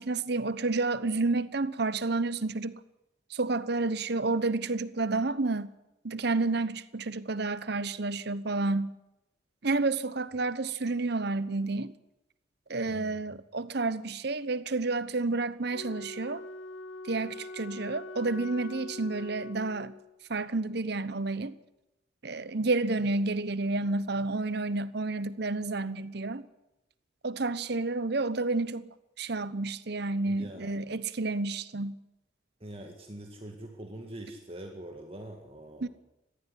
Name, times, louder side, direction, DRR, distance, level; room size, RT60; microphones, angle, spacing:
voice 1, 0.0-2.8 3.3-5.7 6.0-8.9 9.6-11.9 12.7-16.4 17.0-19.9 20.3-21.6 22.2-26.4 27.2-28.9 29.2-32.0 35.8-35.9, right 3 dB, 55° right, 1.0 m, -30 dB
voice 2, 12.9-13.2 30.3-30.7 32.6-35.9, right 1 dB, 30° right, 2.0 m, -44 dB
Wind instrument woodwind instrument, 15.7-20.1, left 2 dB, 80° left, 1.7 m, -43 dB
20.0 x 14.5 x 9.9 m
head